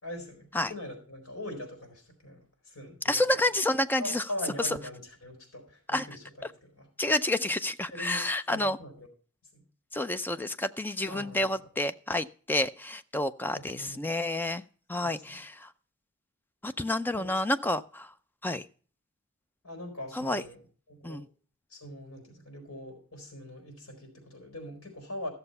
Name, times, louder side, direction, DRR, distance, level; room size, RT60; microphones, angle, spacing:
voice 1, 0.0-3.2 4.0-6.9 7.9-9.1 9.5-9.6 11.1-11.4 13.5-14.1 15.0-15.4 17.1-17.3 19.6-20.6 20.9-21.3 21.7-25.3, left 1 dB, 85° left, 4 dB, 4.4 m, -42 dB
voice 2, 3.1-4.3 4.6-4.8 5.9-6.1 7.0-8.8 9.9-14.6 14.9-15.7 16.6-18.1 18.4-18.7 20.1-20.4 21.0-21.3, left 1 dB, 10° left, 11 dB, 0.4 m, -29 dB
14.0 x 6.9 x 5.4 m, 0.42 s
head